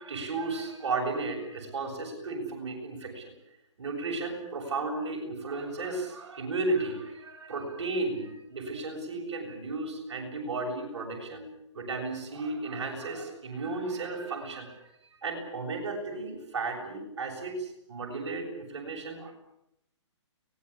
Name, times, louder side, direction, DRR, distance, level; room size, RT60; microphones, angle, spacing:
voice 1, 0.0-3.3 3.8-11.5 11.7-14.8 15.1-19.3, right 3 dB, 65° right, 2 dB, 7.6 m, -34 dB
23.5 x 20.0 x 8.6 m, 0.82 s
hypercardioid pair, 135°, 16 cm